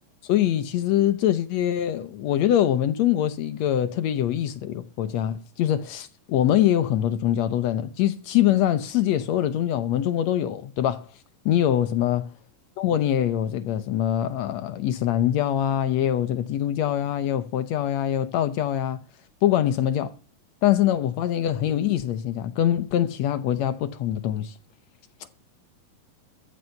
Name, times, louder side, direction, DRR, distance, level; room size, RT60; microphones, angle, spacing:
voice 1, 0.2-11.1 11.4-12.2 12.8-19.0 19.4-20.1 20.6-24.5, left 11 dB, 70° left, 1.7 m, -23 dB
14.0 x 8.1 x 6.5 m
omnidirectional pair, 3.9 m